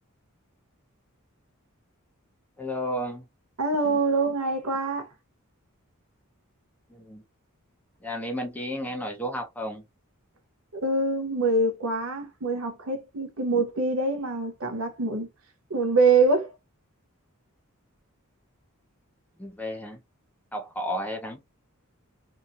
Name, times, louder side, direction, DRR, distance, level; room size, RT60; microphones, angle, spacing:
voice 1, 2.6-3.3 6.9-7.2 8.0-9.8 19.4-20.0 20.5-21.4, equal, 5° left, 0.7 m, -32 dB
voice 2, 3.6-5.1 10.7-15.3 15.7-16.5, right 3 dB, 70° right, 0.7 m, -24 dB
2.8 x 2.6 x 2.3 m
head